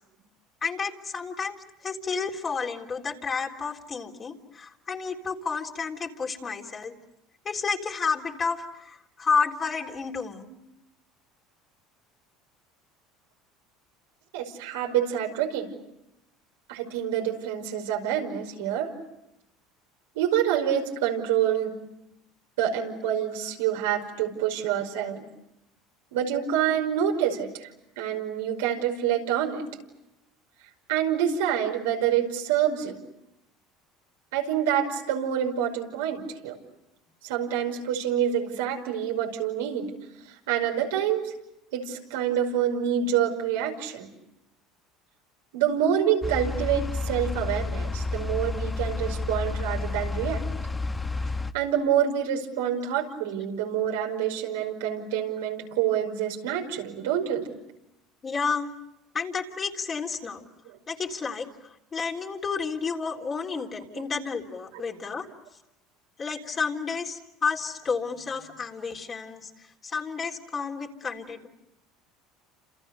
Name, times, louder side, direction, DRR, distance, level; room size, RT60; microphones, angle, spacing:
voice 1, 0.6-7.0 7.5-10.4 58.2-58.7 59.1-60.4 60.9-65.3 66.2-69.5 69.8-71.5, left 5 dB, 30° left, 1 dB, 3.6 m, -31 dB
voice 2, 14.3-15.7 16.7-18.9 20.2-21.8 22.6-25.2 26.1-27.7 28.0-29.7 30.9-33.0 34.3-36.6 37.2-39.9 40.5-41.3 41.7-44.1 45.5-50.5 51.5-57.4 60.7-60.8 63.9-64.1 71.1-71.2, right 9 dB, 90° right, 2 dB, 5.4 m, -27 dB
sound 1, 46.2-51.5, left 3 dB, 15° left, 1.2 m, -30 dB
29.5 x 28.0 x 6.7 m, 0.86 s
supercardioid pair, 105°, 0 cm